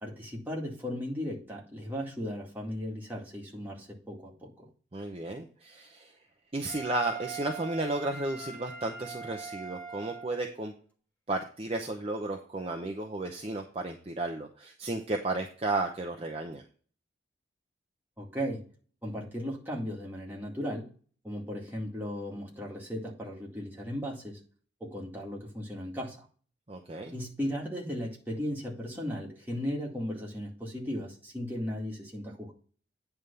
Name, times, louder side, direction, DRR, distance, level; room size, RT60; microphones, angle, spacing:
voice 1, 0.0-4.7 18.2-18.6 19.0-20.8 21.2-24.4 24.8-26.3 27.1-32.5, equal, 10° right, -3 dB, 2.1 m, -36 dB
voice 2, 4.9-6.1 6.5-10.7 11.3-16.6 26.7-27.1, right 2 dB, 30° right, 2 dB, 0.7 m, -33 dB
Wind instrument woodwind instrument, 6.7-10.4, right 6 dB, 10° left, 1.4 m, -42 dB
9.3 x 3.5 x 6.7 m, 0.41 s
head